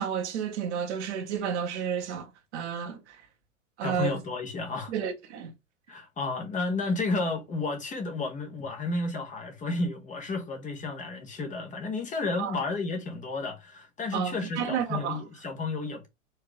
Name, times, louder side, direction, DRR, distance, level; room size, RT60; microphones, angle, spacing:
voice 1, 0.0-3.2 3.8-4.1 4.9-5.5 12.4-12.6 14.1-15.2, right 8 dB, 60° right, 1.5 m, -31 dB
voice 2, 3.8-4.9 5.9-16.1, left 3 dB, 20° left, 1.3 m, -32 dB
4.7 x 3.3 x 3.2 m
hypercardioid pair, 105°, 39 cm